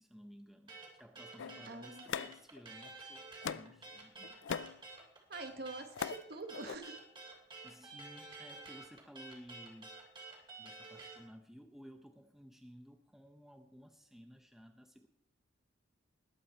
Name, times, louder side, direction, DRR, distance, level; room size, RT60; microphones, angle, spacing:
voice 1, 0.0-4.5 7.6-10.0 10.6-15.1, equal, ahead, 6 dB, 0.7 m, -56 dB
sound 1, 0.7-11.2, right 3 dB, 25° right, 3.0 m, -50 dB
sound 2, 1.4-2.9 3.4-3.8 4.2-4.8 5.6-6.2 6.5-6.8, left 7 dB, 70° left, 0.4 m, -41 dB
voice 2, 1.7-2.2 5.3-7.0, right 3 dB, 55° right, 6 dB, 1.5 m, -46 dB
20.0 x 8.5 x 4.4 m, 0.74 s
head